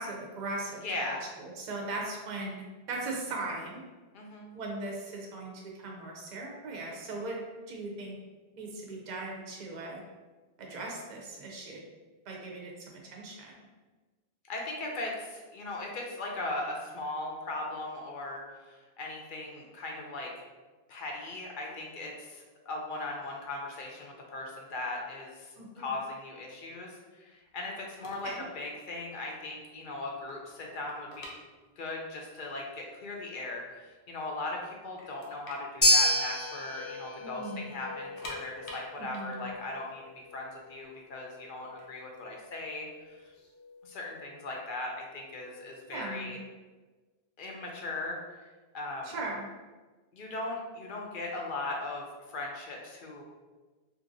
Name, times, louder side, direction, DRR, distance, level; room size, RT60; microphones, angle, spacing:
voice 1, 0.0-1.1 1.4-3.8 4.5-5.5 5.8-7.4 7.7-8.1 8.6-10.0 10.6-11.8 12.3-13.5 25.6-25.9 28.2-28.4 37.2-37.8 39.0-39.5 45.9-46.4 49.0-49.5, right 2 dB, 50° right, -1 dB, 0.6 m, -39 dB
voice 2, 0.8-1.2 4.1-4.5 14.5-20.3 20.9-31.3 31.8-43.3 43.8-46.4 47.4-48.2 48.7-49.1 50.1-53.2, left 2 dB, 60° left, 0 dB, 0.6 m, -38 dB
sound 1, 28.0-28.4 28.7-28.9 29.4-29.5 29.8-32.1 32.3-32.4 33.1-33.2 33.5-34.3 34.6-34.7 35.0-37.0 37.2-37.4 37.9-40.9 41.6-43.3, left 1 dB, 80° left, 0.9 m, -47 dB
sound 2, 35.8-44.2, equal, 15° left, 0.9 m, -32 dB
2.9 x 2.6 x 2.5 m, 1.3 s
omnidirectional pair, 1.1 m